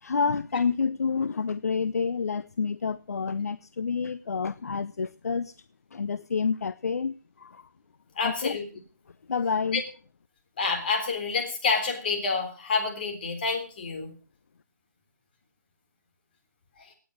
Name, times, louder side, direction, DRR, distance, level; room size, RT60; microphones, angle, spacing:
voice 1, 0.0-5.6 5.9-7.6 8.2-8.6 9.3-9.8, left 5 dB, 55° left, 0.7 m, -28 dB
voice 2, 8.2-8.7 9.7-9.8 10.6-14.1 16.8-16.9, left 4 dB, 30° left, 3.6 m, -28 dB
18.0 x 9.3 x 6.5 m
hypercardioid pair, 165°, 10 cm